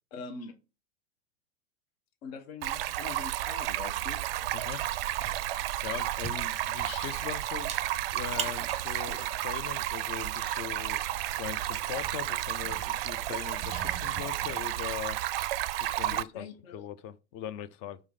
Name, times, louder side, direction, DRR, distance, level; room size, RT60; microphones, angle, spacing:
voice 1, 0.1-0.6 2.2-4.2 16.1-16.8, left 5 dB, 50° left, 1.1 m, -43 dB
Stream, 2.6-16.2, right 14 dB, 50° right, 0.5 m, -32 dB
sound 1, 3.8-14.6, right 7 dB, 20° right, 0.7 m, -45 dB
voice 2, 4.5-4.8 5.8-7.7 8.1-11.0 11.3-15.2 15.8-16.5 16.7-18.0, left 10 dB, 35° left, 0.5 m, -40 dB
4.8 x 3.7 x 5.6 m
figure-of-eight pair, 90°, 37 cm